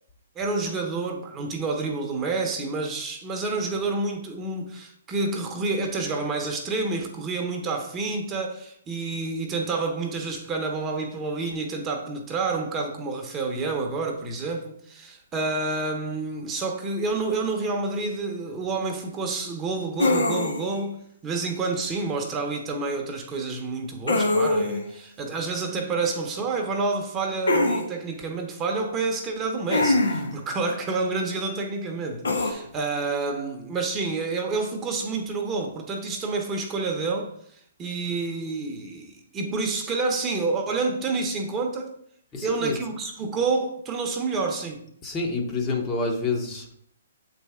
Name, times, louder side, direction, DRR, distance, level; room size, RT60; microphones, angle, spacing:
voice 1, 0.4-41.9 42.4-44.8, right 3 dB, 20° right, 1.0 m, -29 dB
sound 1, 20.0-20.8 24.1-24.9 27.5-27.8 29.7-30.4 32.2-32.5, left 2 dB, 75° left, 1.2 m, -22 dB
voice 2, 42.3-42.8 45.0-46.7, left 3 dB, 20° left, 1.2 m, -28 dB
7.6 x 4.3 x 3.7 m
figure-of-eight pair, 130°, 0 cm